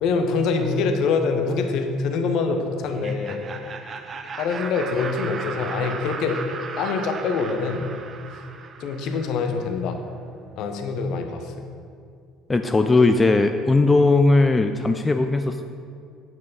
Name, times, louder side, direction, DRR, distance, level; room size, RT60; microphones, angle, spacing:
voice 1, 0.0-3.4 4.4-6.4 6.8-7.9 8.8-10.0 10.6-11.7, left 4 dB, 55° left, 6 dB, 0.9 m, -25 dB
Laughter, 2.8-9.6, right 5 dB, 35° right, 0.8 m, -36 dB
voice 2, 12.5-15.7, left 3 dB, 20° left, 7 dB, 0.4 m, -18 dB
8.9 x 8.6 x 4.0 m, 2.3 s
figure-of-eight pair, 55°, 0 cm